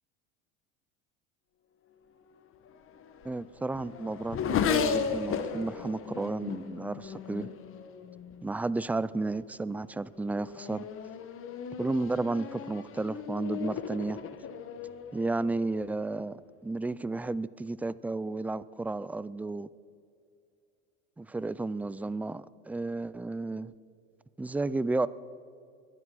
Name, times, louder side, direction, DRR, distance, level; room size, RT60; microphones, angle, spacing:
Race car auto racing / Accelerating revving vroom, 2.7-8.5 9.3-9.7 10.1-16.1, left 7 dB, 40° left, 1.4 m, -35 dB
voice 1, 3.2-7.5 8.4-10.9 11.8-14.2 15.1-19.7 21.2-23.7 24.4-25.1, right 2 dB, 5° right, 18 dB, 0.3 m, -32 dB
22.0 x 10.0 x 6.2 m, 2.3 s
supercardioid pair, 105°, 32 cm